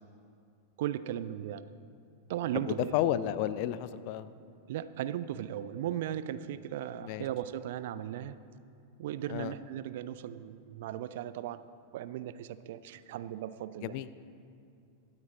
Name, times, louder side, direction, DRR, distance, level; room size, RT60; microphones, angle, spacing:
voice 1, 0.8-1.6 2.3-3.0 4.7-8.4 9.0-11.7 11.9-14.0, right 11 dB, 55° right, 14 dB, 0.5 m, -37 dB
voice 2, 2.7-4.3 7.0-7.2 9.3-9.5 13.8-14.1, left 12 dB, 45° left, 15 dB, 0.5 m, -31 dB
23.0 x 8.7 x 4.0 m, 2.4 s
figure-of-eight pair, 90°, 0 cm